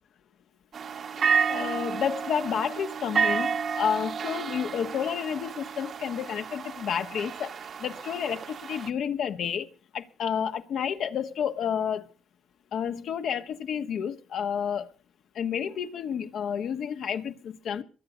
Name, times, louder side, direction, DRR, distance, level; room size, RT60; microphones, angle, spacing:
sound 1, 0.7-8.9, right 6 dB, 55° right, 1.2 m, -31 dB
voice 1, 1.0-12.1 12.7-14.9 15.3-17.8, left 8 dB, 70° left, 1.4 m, -30 dB
23.0 x 8.1 x 5.2 m
cardioid pair, 90°, 0 cm